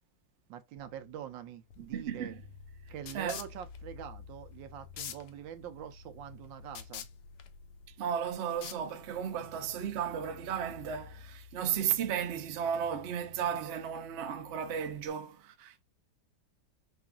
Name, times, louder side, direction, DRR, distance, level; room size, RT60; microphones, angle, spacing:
voice 1, 0.5-2.4 2.9-7.1, right 10 dB, 85° right, 1.3 m, -44 dB
sound 1, 0.8-15.1, left 5 dB, 45° left, 0.9 m, -54 dB
sound 2, 1.7-9.3, left 9 dB, 70° left, 1.1 m, -48 dB
voice 2, 1.9-2.4 3.1-3.4 8.0-15.7, right 8 dB, 70° right, 0.6 m, -34 dB
5.7 x 2.4 x 2.3 m
omnidirectional pair, 2.0 m